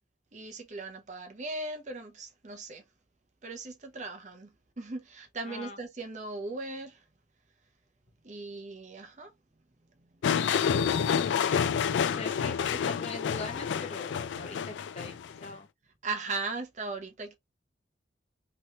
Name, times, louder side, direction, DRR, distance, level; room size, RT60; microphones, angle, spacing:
voice 1, 0.3-2.8 3.4-4.5 4.8-7.0 8.2-9.3 12.5-12.6 16.0-17.3, right 3 dB, 40° right, 0.7 m, -38 dB
voice 2, 5.5-5.8 11.2-11.9 12.2-15.7, left 3 dB, 35° left, 0.8 m, -42 dB
sound 1, 10.2-15.5, left 7 dB, 80° left, 0.3 m, -28 dB
3.0 x 2.9 x 2.9 m
head